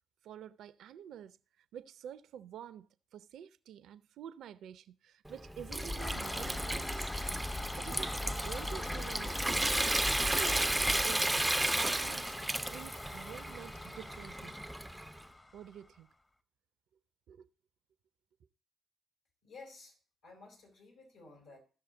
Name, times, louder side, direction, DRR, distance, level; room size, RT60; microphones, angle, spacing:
voice 1, 0.2-1.4 1.7-7.1 7.7-11.3 11.7-12.3 12.6-14.6 15.5-16.1 17.3-17.5, right 9 dB, 60° right, 0.5 m, -48 dB
Water tap faucet / Sink (filling or washing) / Trickle dribble, 5.3-15.2, right 1 dB, 10° right, 0.5 m, -34 dB
sound 1, 5.5-16.0, left 2 dB, 25° left, 1.0 m, -41 dB
voice 2, 19.4-21.6, left 3 dB, 70° left, 4.5 m, -54 dB
14.5 x 6.6 x 3.8 m
figure-of-eight pair, 40°, 0 cm